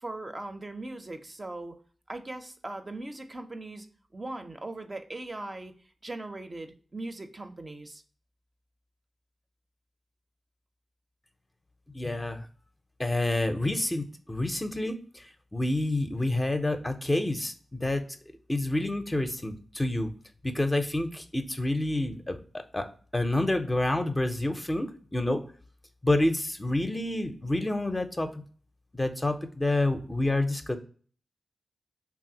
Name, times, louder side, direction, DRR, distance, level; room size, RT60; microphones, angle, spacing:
voice 1, 0.0-1.8 2.1-3.9 4.1-5.8 6.0-8.0, right 2 dB, 35° right, 6 dB, 0.4 m, -39 dB
voice 2, 11.9-12.5 13.0-18.0 18.5-20.1 20.4-22.9 23.1-25.4 26.0-28.3 28.9-30.8, left 2 dB, 20° left, 6 dB, 0.5 m, -28 dB
3.2 x 2.4 x 2.6 m, 0.42 s
cardioid pair, 55°, 0 cm